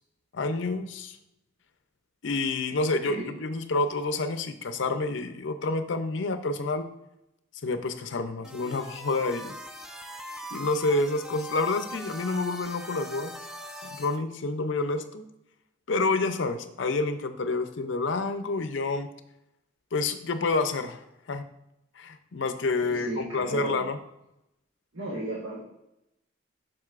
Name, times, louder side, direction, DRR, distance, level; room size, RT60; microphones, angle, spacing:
voice 1, 0.3-1.2 2.2-6.9 7.6-9.5 10.5-13.3 13.8-15.2 15.9-19.1 19.9-21.0 21.3-21.4 22.0-24.0, left 3 dB, 65° left, 10 dB, 0.5 m, -28 dB
voice 2, 2.9-3.3 22.9-23.9 24.9-25.6, right 1 dB, 75° right, -5 dB, 1.4 m, -35 dB
sound 1, 8.4-14.2, equal, 5° right, 0.3 m, -41 dB
7.7 x 6.1 x 2.5 m, 0.86 s
head